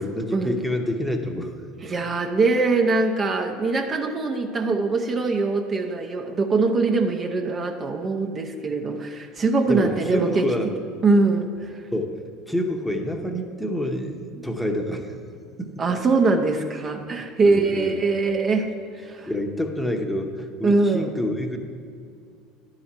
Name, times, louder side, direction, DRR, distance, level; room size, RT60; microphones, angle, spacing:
voice 1, 0.0-1.6 9.7-10.7 11.9-15.1 15.6-15.8 17.4-18.0 19.3-21.6, left 1 dB, 5° left, 4 dB, 0.9 m, -27 dB
voice 2, 1.8-10.5 11.0-11.8 15.8-19.3 20.6-21.1, right 3 dB, 35° right, 4 dB, 0.7 m, -22 dB
11.0 x 4.9 x 4.3 m, 2.3 s
hypercardioid pair, 75°, 0 cm